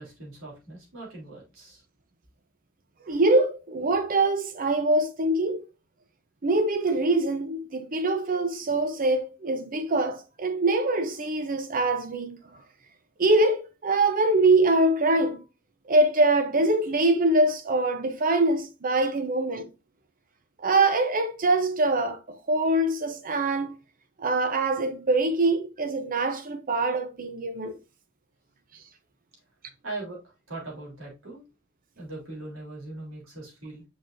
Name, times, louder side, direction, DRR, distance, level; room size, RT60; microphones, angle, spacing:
voice 1, 0.0-1.8 29.8-31.4 32.0-33.8, right 2 dB, 80° right, 3.4 m, -40 dB
voice 2, 3.0-5.6 6.4-12.4 13.2-15.4 15.9-19.7 20.6-23.7 24.2-27.7, right 2 dB, 45° right, 0.7 m, -24 dB
6.1 x 6.0 x 2.6 m
head